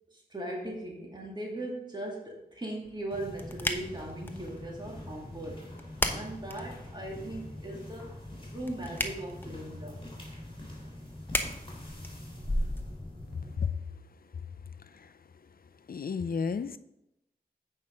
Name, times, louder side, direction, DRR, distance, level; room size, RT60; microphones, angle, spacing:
voice 1, 0.1-5.6 6.1-8.1 8.4-10.0, right 1 dB, 25° right, 2.3 m, -39 dB
sound 1, 2.8-12.8, left 1 dB, 10° left, 1.0 m, -39 dB
sound 2, 3.1-13.6, left 1 dB, 30° left, 3.4 m, -40 dB
voice 2, 15.9-16.8, left 5 dB, 60° left, 0.5 m, -31 dB
8.9 x 5.4 x 5.1 m
cardioid pair, 45°, 17 cm